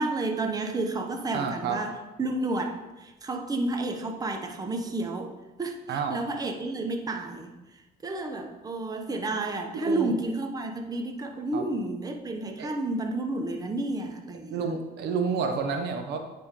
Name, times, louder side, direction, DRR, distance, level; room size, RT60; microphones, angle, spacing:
voice 1, 0.0-5.3 5.6-7.5 8.0-14.6, right 2 dB, 20° right, 4 dB, 0.8 m, -31 dB
voice 2, 1.3-1.8 5.9-6.2 9.7-10.1 11.5-11.6 12.6-12.7 14.5-16.2, right 5 dB, 80° right, 5 dB, 0.9 m, -29 dB
9.4 x 3.5 x 3.6 m, 1.1 s
cardioid pair, 110°, 17 cm